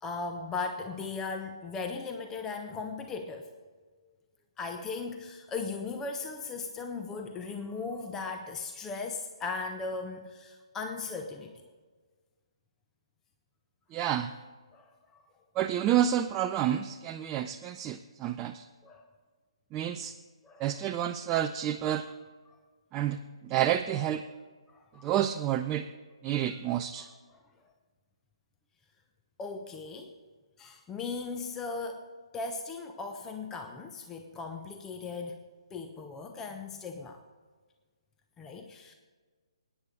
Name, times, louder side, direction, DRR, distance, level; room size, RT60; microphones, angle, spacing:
voice 1, 0.0-3.6 4.6-11.5 14.7-15.2 18.8-19.1 20.4-20.7 22.5-22.6 23.9-24.1 24.7-25.1 27.3-27.4 29.4-30.1 30.6-35.4 35.7-37.2 38.4-38.9, left 4 dB, 15° left, 5 dB, 0.8 m, -38 dB
voice 2, 13.9-14.3 15.6-18.7 19.7-20.1 20.6-22.1 22.9-24.2 25.0-25.9 26.2-27.1, right 11 dB, 20° right, 6 dB, 0.4 m, -29 dB
20.5 x 9.9 x 3.7 m, 1.4 s
figure-of-eight pair, 140°, 3 cm